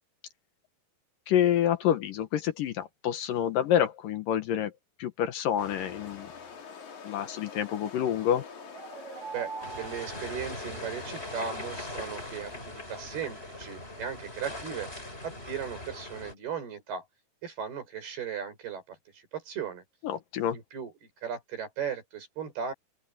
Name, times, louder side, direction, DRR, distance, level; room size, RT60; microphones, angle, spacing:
voice 1, 1.3-4.7 5.0-6.3 7.0-8.5 20.0-20.6, left 10 dB, 70° left, 2.6 m, -27 dB
sound 1, 5.6-12.6, left 6 dB, 50° left, 4.0 m, -46 dB
sound 2, 8.4-11.3, right 5 dB, 60° right, 3.5 m, -44 dB
voice 2, 9.3-14.9 15.2-17.1 17.4-19.8 20.5-22.7, right 7 dB, 75° right, 7.6 m, -37 dB
sound 3, 9.6-16.3, left 1 dB, 15° left, 6.0 m, -41 dB
open air
omnidirectional pair, 4.5 m